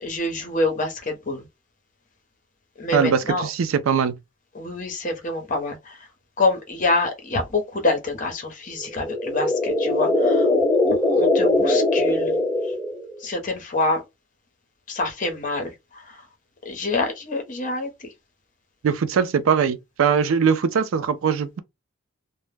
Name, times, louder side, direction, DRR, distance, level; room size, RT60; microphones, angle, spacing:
voice 1, 0.0-1.5 2.8-3.5 4.5-6.1 6.4-10.5 10.9-12.4 13.2-14.0 14.9-16.2 16.6-18.1, left 2 dB, 40° left, 0.7 m, -26 dB
voice 2, 2.9-4.2 18.8-21.6, right 6 dB, 85° right, 0.4 m, -21 dB
sound 1, 8.8-13.2, left 2 dB, 5° left, 0.5 m, -21 dB
2.1 x 2.1 x 3.2 m
head